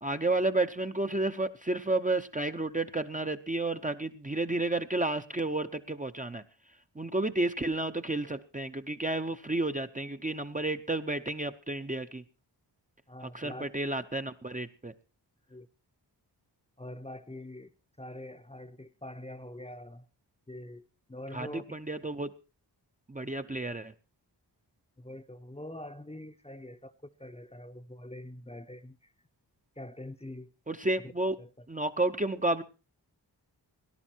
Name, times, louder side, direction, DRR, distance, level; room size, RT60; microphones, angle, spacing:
voice 1, 0.0-6.4 6.9-12.2 13.3-14.9 21.3-22.3 23.1-23.9 30.7-31.4 31.7-32.6, right 2 dB, 20° right, 7 dB, 0.7 m, -31 dB
voice 2, 13.1-13.7 15.5-15.7 16.8-17.7 18.0-20.1 20.5-21.8 25.0-29.1 29.8-30.5 31.0-31.1 31.4-31.5, left 1 dB, 15° left, 9 dB, 0.8 m, -44 dB
18.5 x 11.0 x 4.5 m, 0.33 s
wide cardioid pair, 100°, 42 cm